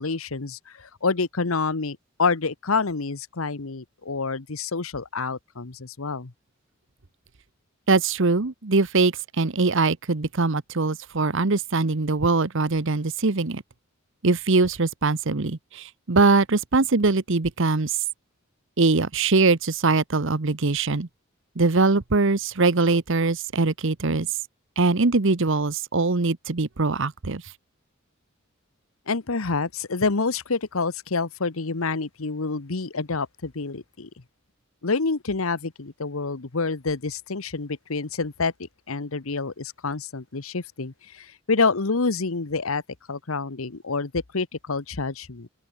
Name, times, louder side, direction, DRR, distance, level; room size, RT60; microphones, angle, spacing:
voice 1, 0.0-6.3 29.1-34.1 34.8-42.8 43.1-45.5, left 4 dB, 80° left, 1.2 m, -27 dB
voice 2, 7.9-13.6 14.2-18.0 18.8-21.1 21.6-24.3 24.8-27.4, right 3 dB, 65° right, 1.0 m, -22 dB
open air
head